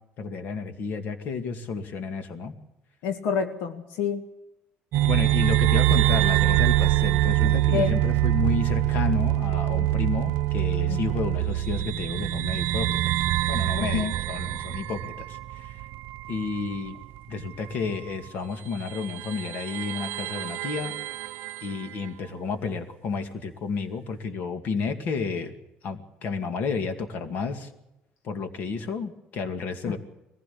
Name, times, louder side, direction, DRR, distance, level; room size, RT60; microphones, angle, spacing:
voice 1, 0.2-2.5 5.1-13.1 13.5-15.9 16.3-17.0 17.3-20.9 21.6-25.5 25.8-27.7 28.2-30.0, left 4 dB, 55° left, 8 dB, 2.3 m, -31 dB
voice 2, 3.0-4.3 7.4-8.0 10.9-11.0 13.8-14.1 29.9-30.0, left 7 dB, 85° left, 6 dB, 1.8 m, -28 dB
sound 1, 4.9-16.9 17.2-17.3 18.3-18.4 18.9-21.9, right 16 dB, 75° right, 0.6 m, -24 dB
21.5 x 15.5 x 8.6 m, 0.92 s
cardioid pair, 130°, 4 cm